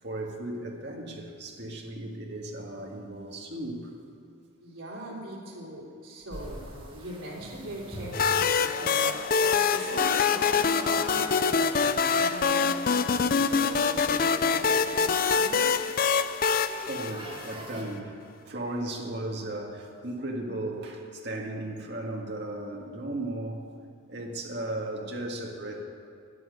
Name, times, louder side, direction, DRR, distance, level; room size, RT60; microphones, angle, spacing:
voice 1, 0.0-3.9 15.8-15.9 16.9-18.2 18.5-23.7 24.1-25.8, right 1 dB, 55° right, 0 dB, 2.0 m, -36 dB
voice 2, 4.6-9.2 9.7-12.8 13.2-15.7, right 1 dB, 85° right, -5 dB, 3.5 m, -41 dB
sound 1, 6.3-17.8, right 1 dB, 25° right, 2.2 m, -43 dB
sound 2, 8.1-17.8, left 5 dB, 45° left, 0.4 m, -25 dB
11.0 x 10.5 x 9.3 m, 2.4 s
head